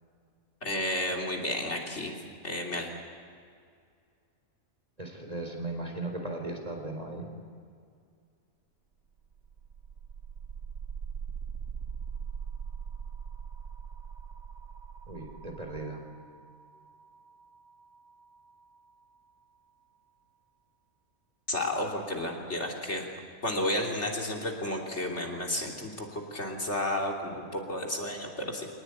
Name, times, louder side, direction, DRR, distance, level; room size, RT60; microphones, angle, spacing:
voice 1, 0.6-2.1 2.4-2.9 21.5-23.1 23.4-28.7, left 1 dB, 55° left, 0 dB, 3.5 m, -32 dB
voice 2, 5.0-7.3 15.1-16.0, right 2 dB, 25° right, 3 dB, 4.0 m, -37 dB
sound 1, 9.2-19.2, right 7 dB, 60° right, 1.2 m, -42 dB
26.0 x 19.0 x 9.7 m, 2.3 s
omnidirectional pair, 1.4 m